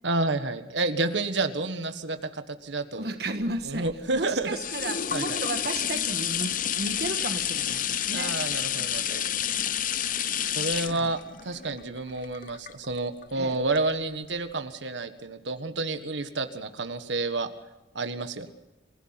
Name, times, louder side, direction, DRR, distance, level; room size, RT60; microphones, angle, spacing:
voice 1, 0.0-3.1 3.6-4.6 5.1-5.4 8.1-9.2 10.5-17.5 17.9-18.5, right 2 dB, 80° right, 8 dB, 1.5 m, -30 dB
voice 2, 3.0-8.4 10.8-11.1 13.4-13.6, right 2 dB, 60° right, 7 dB, 1.4 m, -34 dB
sound 1, 3.5-13.2 13.8-13.9, left 10 dB, 45° left, 0.8 m, -30 dB
28.0 x 17.0 x 5.9 m, 0.99 s
head